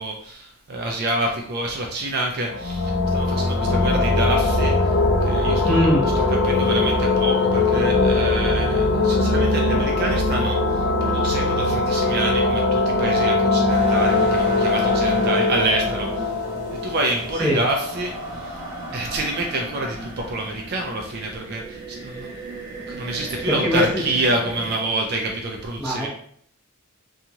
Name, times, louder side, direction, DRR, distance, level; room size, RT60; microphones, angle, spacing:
voice 1, 0.0-5.7 6.1-16.5 16.8-18.6 18.9-22.3 22.9-26.1, right 2 dB, 45° right, 1 dB, 0.4 m, -27 dB
sound 1, 2.5-18.0, left 2 dB, 60° left, 0.4 m, -21 dB
voice 2, 5.6-6.0 17.4-17.6 23.5-23.8 25.8-26.1, left 1 dB, 5° left, -7 dB, 0.9 m, -20 dB
sound 2, 13.7-24.7, equal, 25° right, 1.1 m, -34 dB
2.8 x 2.3 x 2.6 m, 0.62 s
head